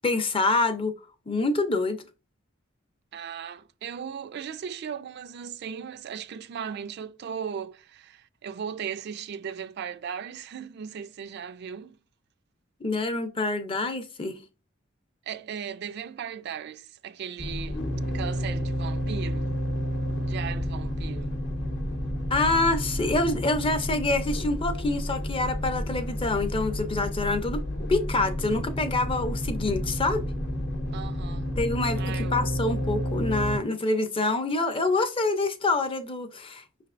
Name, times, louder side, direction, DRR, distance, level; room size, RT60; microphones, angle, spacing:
voice 1, 0.0-0.9 1.3-2.0 12.8-14.4 22.3-27.6 27.9-30.2 31.6-36.9, left 2 dB, 25° left, 0.5 m, -26 dB
voice 2, 3.1-12.0 15.3-19.5 20.2-21.4 30.9-31.5 32.0-32.4, right 7 dB, 55° right, 0.3 m, -37 dB
sound 1, 17.4-33.6, equal, 55° left, 0.8 m, -30 dB
5.9 x 3.2 x 2.4 m
head